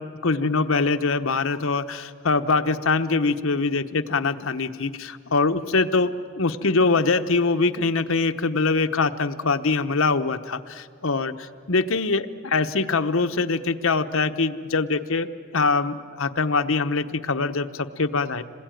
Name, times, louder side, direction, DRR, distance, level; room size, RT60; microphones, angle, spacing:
voice 1, 0.2-15.3 15.5-18.4, left 3 dB, 80° left, 8 dB, 1.0 m, -23 dB
27.5 x 21.0 x 9.1 m, 2.1 s
head